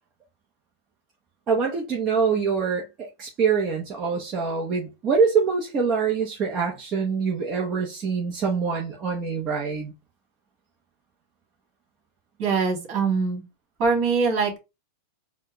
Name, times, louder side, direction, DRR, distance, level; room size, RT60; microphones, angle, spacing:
voice 1, 1.5-9.9, right 5 dB, 35° right, 1.0 m, -25 dB
voice 2, 12.4-13.4 13.8-14.6, right 4 dB, 50° right, 2.2 m, -23 dB
4.4 x 2.4 x 3.0 m
hypercardioid pair, 120°, 0 cm